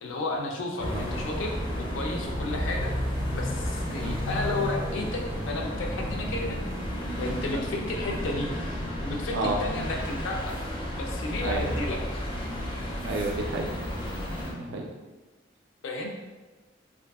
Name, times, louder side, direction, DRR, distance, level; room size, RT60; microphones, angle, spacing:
voice 1, 0.0-2.9 3.3-6.6 7.2-8.5 9.0-10.5 10.9-12.2 15.8-16.1, left 2 dB, 85° left, 1 dB, 0.4 m, -33 dB
sound 1, 0.8-14.5, equal, 25° left, 0.4 m, -32 dB
voice 2, 13.0-13.7 14.5-14.9, right 3 dB, 60° right, 2 dB, 0.3 m, -30 dB
2.6 x 2.4 x 2.3 m, 1.2 s
head